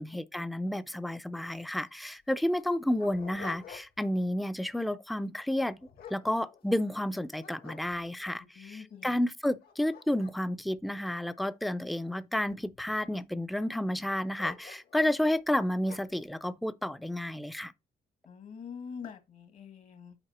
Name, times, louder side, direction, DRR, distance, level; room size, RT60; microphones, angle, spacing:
voice 1, 0.0-5.8 6.1-17.7, left 1 dB, ahead, 0.4 m, -31 dB
Dog, 1.8-1.9 2.5-4.1 4.6-4.9 5.5-7.0 7.4-8.3 8.9-9.0 9.5-11.8 12.5-13.1 14.4-15.2 15.8-16.2, left 7 dB, 75° left, 1.8 m, -50 dB
voice 2, 8.5-9.2 18.2-20.2, left 6 dB, 60° left, 1.4 m, -45 dB
7.9 x 4.6 x 4.3 m
cardioid pair, 140°, 16 cm